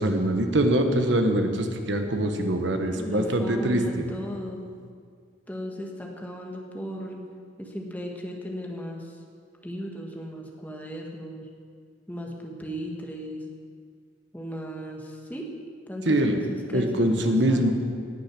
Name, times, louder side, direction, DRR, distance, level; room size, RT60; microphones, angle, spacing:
voice 1, 0.0-4.0 16.0-16.4 16.7-17.7, right 1 dB, 70° right, 5 dB, 1.3 m, -23 dB
voice 2, 2.8-4.6 5.5-7.2 7.6-9.1 9.6-11.4 12.1-13.4 14.3-15.5 15.9-17.7, equal, 10° left, 0 dB, 1.4 m, -36 dB
18.5 x 6.5 x 6.1 m, 2.1 s
head